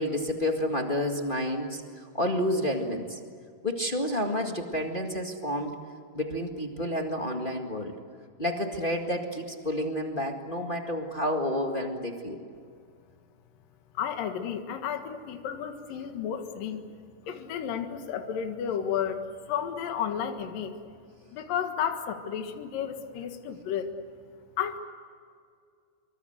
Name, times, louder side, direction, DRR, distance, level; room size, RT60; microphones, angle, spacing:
voice 1, 0.0-3.2 3.6-5.7 6.1-7.9 8.4-12.4, left 1 dB, 25° left, 2 dB, 1.0 m, -30 dB
voice 2, 13.9-16.8 17.3-20.7 21.3-23.9 24.6-24.8, left 8 dB, 70° left, 6 dB, 3.2 m, -32 dB
27.0 x 24.5 x 8.0 m, 2.2 s
omnidirectional pair, 4.2 m